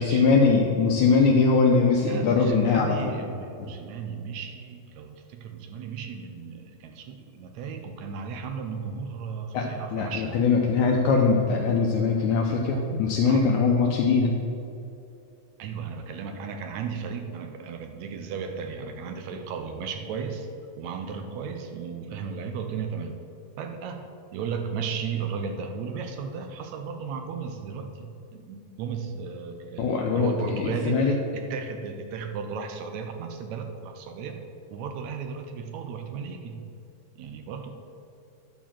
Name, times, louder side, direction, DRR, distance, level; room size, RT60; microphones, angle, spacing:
voice 1, 0.0-3.1 3.6-3.7 9.5-14.4 29.8-31.2, left 4 dB, 75° left, 0 dB, 2.1 m, -22 dB
voice 2, 2.1-10.5 13.2-13.5 15.6-20.5 20.8-23.2 23.6-34.4 34.7-36.6 37.2-37.7, right 6 dB, 80° right, 6 dB, 1.8 m, -35 dB
10.0 x 4.4 x 7.4 m, 2.7 s
omnidirectional pair, 3.6 m